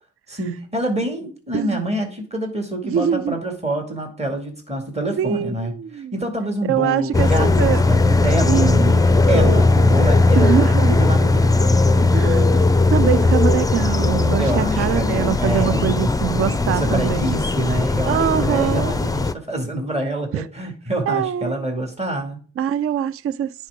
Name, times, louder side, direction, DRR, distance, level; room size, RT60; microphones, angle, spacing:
voice 1, 0.3-8.9 9.3-12.2 14.4-16.2 16.7-22.4, right 1 dB, 20° right, 2.3 m, -26 dB
voice 2, 2.8-3.4 5.2-6.2 6.7-7.8 8.4-9.0 9.3-9.6 10.4-11.0 12.1-12.6 12.9-17.4 18.1-18.9 20.3-20.4 21.1-21.6 22.6-23.7, right 10 dB, 40° right, 0.4 m, -23 dB
sound 1, 7.1-19.3, left 3 dB, 10° left, 0.5 m, -17 dB
9.9 x 4.7 x 3.8 m
supercardioid pair, 45°, 36 cm